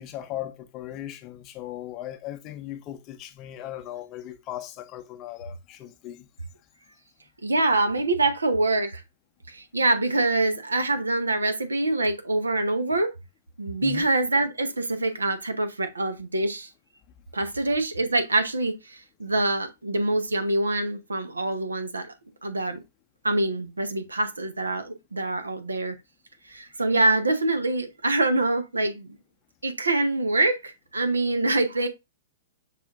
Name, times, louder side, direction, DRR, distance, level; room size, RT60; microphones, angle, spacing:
voice 1, 0.0-6.3 13.8-14.1, left 13 dB, 35° left, 0.7 m, -38 dB
voice 2, 7.4-9.0 9.5-13.1 13.6-16.7 17.3-22.1 22.4-22.8 23.2-25.9 26.5-29.2 29.6-31.9, right 2 dB, 90° right, 0.8 m, -25 dB
6.0 x 2.5 x 3.5 m
hypercardioid pair, 115°, 0 cm